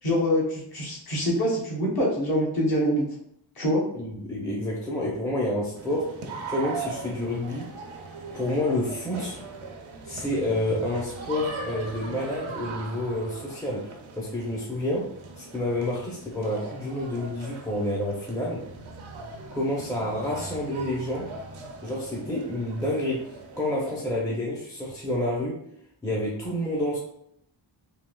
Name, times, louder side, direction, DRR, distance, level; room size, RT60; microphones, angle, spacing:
voice 1, 0.0-3.1 3.6-3.8, equal, 50° left, -5 dB, 1.1 m, -25 dB
voice 2, 3.9-6.2 6.5-7.7 8.3-9.4 10.0-18.7 19.5-21.3 21.8-23.3 23.6-25.6 26.0-27.0, left 1 dB, 10° left, -4 dB, 0.5 m, -29 dB
sound 1, 5.7-24.0, right 3 dB, 80° right, 0.6 m, -40 dB
3.5 x 2.7 x 2.3 m, 0.72 s
wide cardioid pair, 110°, 47 cm